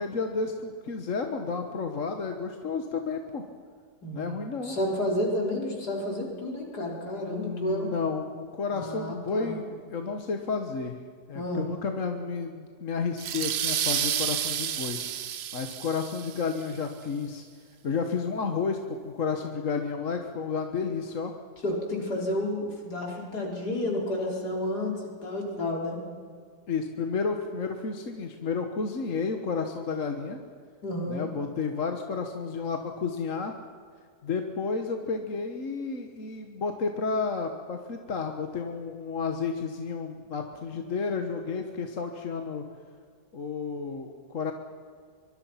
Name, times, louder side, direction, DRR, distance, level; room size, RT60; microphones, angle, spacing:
voice 1, 0.0-3.4 4.1-4.8 7.3-11.0 11.3-15.0 15.5-17.4 17.8-21.3 26.7-30.4 31.1-33.6 34.2-42.7 43.3-44.5, left 5 dB, 50° left, 5 dB, 1.6 m, -31 dB
voice 2, 4.0-4.3 4.6-7.9 8.7-9.6 11.4-11.7 21.6-26.0 30.8-31.3, left 1 dB, 65° left, -1 dB, 5.0 m, -31 dB
sound 1, 13.2-16.6, right 9 dB, 60° right, 0.7 m, -30 dB
24.0 x 23.5 x 5.8 m, 2.1 s
omnidirectional pair, 1.8 m